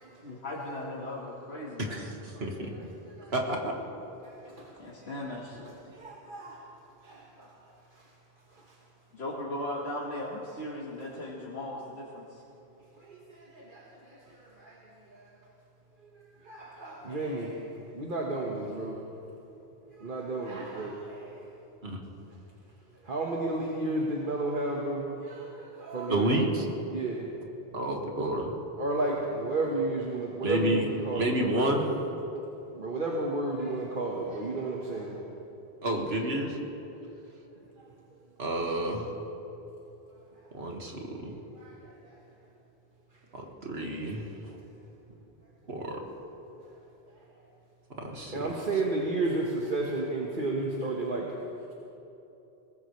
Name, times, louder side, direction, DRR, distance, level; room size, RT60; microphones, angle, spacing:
voice 1, 0.2-2.1 4.8-5.8 9.1-12.4, left 1 dB, 90° left, -4 dB, 1.9 m, -37 dB
voice 2, 1.9-2.7 3.3-3.7 21.8-22.0 26.1-26.6 27.7-28.5 30.4-30.9 31.1-32.0 35.8-36.6 38.4-39.1 40.5-41.4 43.3-44.3 45.7-46.0 48.0-48.5, right 1 dB, 75° right, 1 dB, 2.1 m, -30 dB
voice 3, 4.2-4.7 6.0-6.6 7.0-7.5 13.1-13.8 14.7-14.8 16.4-17.6 17.9-18.9 20.0-21.3 23.1-26.4 26.9-27.2 28.8-31.3 32.7-35.2 41.6-41.7 48.3-51.3, right 2 dB, 55° right, -2 dB, 1.6 m, -32 dB
22.0 x 19.5 x 3.2 m, 3.0 s
omnidirectional pair, 1.1 m